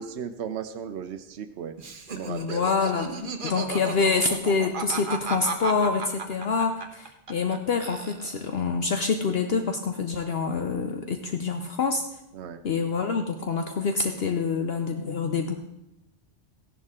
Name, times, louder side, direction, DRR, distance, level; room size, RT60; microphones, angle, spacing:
voice 1, 0.0-1.8 2.1-2.7 12.3-12.6, right 8 dB, 70° right, 7 dB, 1.0 m, -36 dB
Laughter, 1.8-7.6 7.8-8.6, right 4 dB, 50° right, 1.2 m, -34 dB
voice 2, 2.3-3.1 3.4-12.0 12.6-15.6, left 4 dB, 60° left, 6 dB, 0.9 m, -26 dB
15.5 x 10.5 x 3.7 m, 0.85 s
omnidirectional pair, 1.2 m